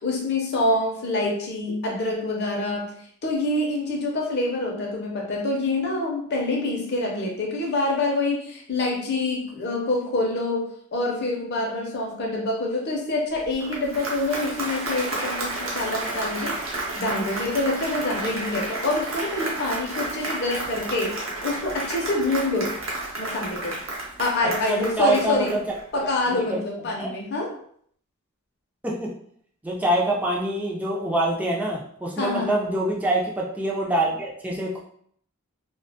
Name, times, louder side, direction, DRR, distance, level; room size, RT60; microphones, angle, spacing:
voice 1, 0.0-2.9 3.2-10.7 10.9-21.1 21.4-22.7 23.2-23.8 24.2-25.6 25.9-27.5 32.2-32.5, left 2 dB, 50° left, -1 dB, 0.5 m, -26 dB
Applause, 13.4-26.0, right 2 dB, 65° right, 0.7 m, -31 dB
voice 2, 24.7-25.6 25.9-26.6 27.0-27.1 28.8-29.1 29.6-34.8, right 1 dB, 5° right, -3 dB, 0.3 m, -25 dB
2.3 x 2.1 x 2.7 m, 0.63 s
head